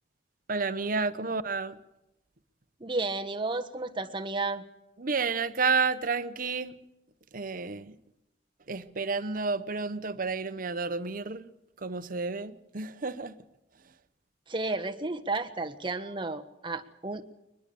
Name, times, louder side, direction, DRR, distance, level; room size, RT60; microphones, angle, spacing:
voice 1, 0.5-1.8 5.0-6.7 7.3-7.9 8.7-11.5 11.8-13.3, right 4 dB, 50° right, 1.0 m, -30 dB
voice 2, 2.8-4.6 14.5-17.2, right 3 dB, 25° right, 1.3 m, -32 dB
23.0 x 20.5 x 7.0 m
head